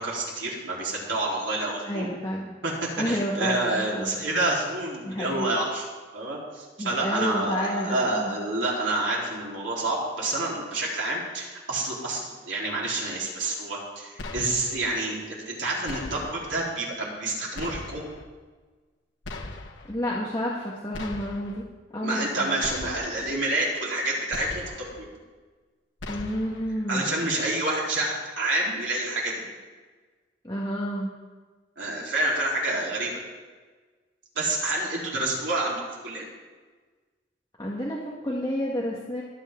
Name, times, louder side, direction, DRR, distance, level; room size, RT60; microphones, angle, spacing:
voice 1, 0.0-2.1 2.6-5.8 6.1-18.1 22.0-25.1 26.9-29.4 31.8-33.1 34.4-36.3, right 2 dB, 85° right, -4 dB, 3.8 m, -28 dB
voice 2, 1.8-2.5 3.0-4.2 5.0-5.5 6.8-8.4 19.9-21.6 21.9-22.5 26.1-27.2 30.4-31.1 37.6-39.2, equal, 20° left, -5 dB, 1.5 m, -30 dB
sound 1, 14.2-14.9 15.9-16.6 17.5-18.2 19.2-19.9 20.9-21.6 22.6-23.3 24.3-25.0 26.0-26.7, left 2 dB, 80° left, 1.3 m, -39 dB
24.5 x 8.2 x 3.7 m, 1.4 s
head